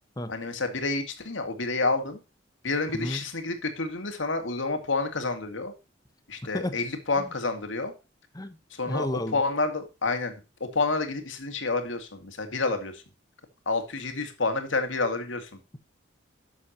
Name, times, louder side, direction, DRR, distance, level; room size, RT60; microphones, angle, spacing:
voice 1, 0.3-2.2 2.6-5.7 6.3-7.9 8.7-10.3 10.6-13.0 13.7-15.6, left 3 dB, 75° left, 2.2 m, -29 dB
voice 2, 2.9-3.2 6.5-6.8 7.2-7.3 8.3-8.6 8.8-9.4, left 1 dB, 20° left, 1.0 m, -32 dB
11.5 x 7.2 x 2.9 m
head